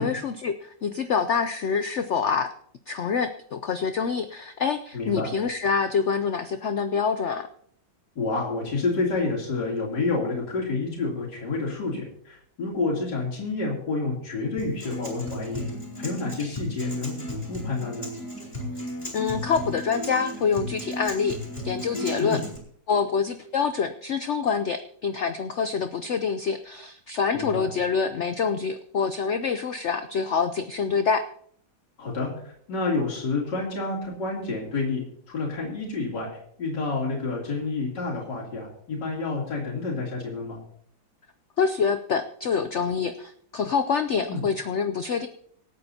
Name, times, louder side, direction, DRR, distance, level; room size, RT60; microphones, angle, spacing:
voice 1, 0.0-2.5 2.9-7.5 19.1-21.4 21.6-22.4 22.9-31.3 41.6-45.3, left 6 dB, 85° left, 9 dB, 0.6 m, -26 dB
voice 2, 4.9-5.3 8.2-15.6 16.0-18.1 22.2-22.5 27.3-27.7 32.0-35.0 35.3-36.3 36.6-40.6 44.3-44.4, left 3 dB, 65° left, -3 dB, 3.7 m, -29 dB
Acoustic guitar, 14.6-22.6, equal, 20° left, 3.8 m, -35 dB
25.5 x 8.6 x 2.8 m, 0.63 s
omnidirectional pair, 2.0 m